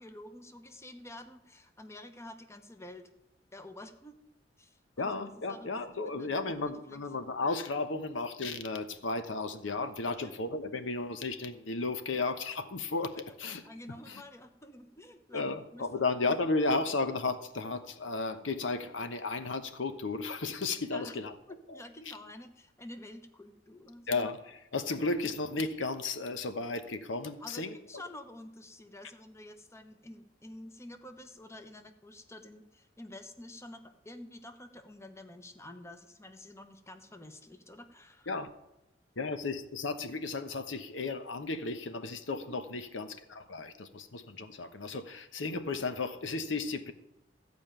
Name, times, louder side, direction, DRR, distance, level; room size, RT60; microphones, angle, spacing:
voice 1, 0.0-3.1 3.5-4.1 4.6-5.1 5.5-6.3 6.6-7.0 10.2-10.3 13.3-13.4 13.7-15.9 20.9-21.1 21.5-24.2 27.4-38.3 42.3-42.6, left 1 dB, 15° left, 7 dB, 0.9 m, -49 dB
voice 2, 5.0-13.6 14.1-14.2 15.3-21.3 21.7-21.8 22.1-22.2 24.1-28.0 38.3-38.5 39.2-46.9, left 3 dB, 85° left, 10 dB, 1.0 m, -34 dB
14.0 x 5.2 x 9.0 m, 0.87 s
head